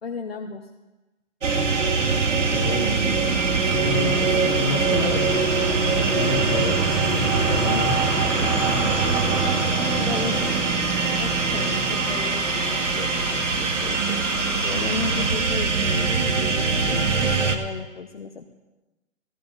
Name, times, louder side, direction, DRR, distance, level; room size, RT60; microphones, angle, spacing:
voice 1, 0.0-0.7 9.8-10.5 11.2-18.5, left 4 dB, 50° left, 0 dB, 0.9 m, -35 dB
sound 1, 1.4-17.6, right 4 dB, 65° right, 1.6 m, -23 dB
voice 2, 2.4-3.0 3.6-5.6 5.9-8.0, left 3 dB, 25° left, -3 dB, 1.6 m, -29 dB
sound 2, 3.2-15.3, equal, 10° right, 2.7 m, -32 dB
17.0 x 15.0 x 2.6 m, 1.1 s
hypercardioid pair, 180°, 39 cm